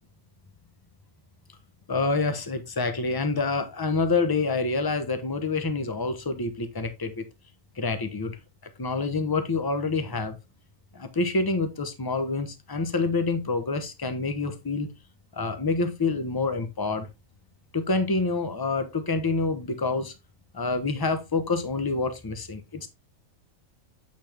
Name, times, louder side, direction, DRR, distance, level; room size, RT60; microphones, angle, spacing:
voice 1, 1.9-7.2 7.8-8.4 8.8-10.4 10.9-14.9 15.3-17.1 17.7-20.1 20.5-22.9, left 3 dB, 20° left, 0.9 m, -27 dB
8.3 x 5.2 x 3.4 m
omnidirectional pair, 1.4 m